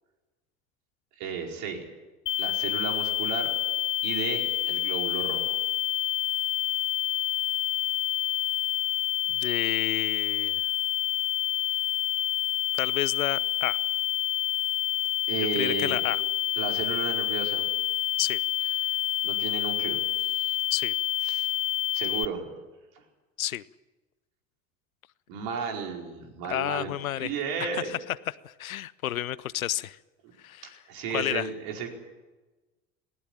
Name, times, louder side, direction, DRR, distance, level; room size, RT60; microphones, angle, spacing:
voice 1, 1.2-1.8 2.4-3.5 4.0-5.6 15.3-16.0 16.6-17.7 19.2-20.6 21.2-21.5 21.9-22.5 22.9-23.0 25.3-27.9 30.2-30.3 30.9-31.9, right 6 dB, 60° right, 2 dB, 4.9 m, -34 dB
sound 1, 2.3-22.3, left 14 dB, 30° left, 0.6 m, -28 dB
voice 2, 9.3-10.6 12.7-13.8 15.6-16.2 18.2-18.4 20.7-20.9 23.4-23.6 26.5-27.3 27.6-28.0 28.3-30.0 30.4-30.8 31.1-31.5, left 12 dB, 80° left, 21 dB, 0.7 m, -31 dB
19.5 x 18.5 x 10.0 m, 1.2 s
figure-of-eight pair, 70°, 41 cm